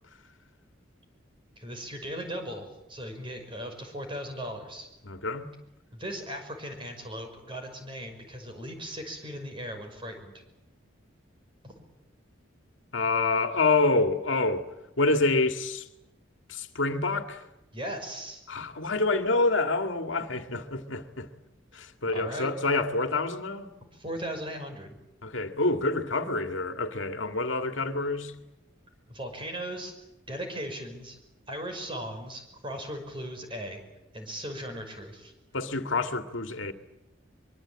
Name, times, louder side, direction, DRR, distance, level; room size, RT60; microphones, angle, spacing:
voice 1, 1.6-4.9 5.9-10.4 11.6-11.7 17.7-18.4 22.1-22.5 23.9-25.0 29.1-29.9 30.3-31.2 31.5-33.8 34.1-35.3, equal, 25° right, 5.7 m, -38 dB
voice 2, 5.1-5.5 12.9-14.7 15.0-15.9 16.5-17.4 18.5-21.3 21.7-23.7 25.2-28.3 35.5-36.7, left 3 dB, 80° left, 2.1 m, -27 dB
24.0 x 24.0 x 8.9 m
head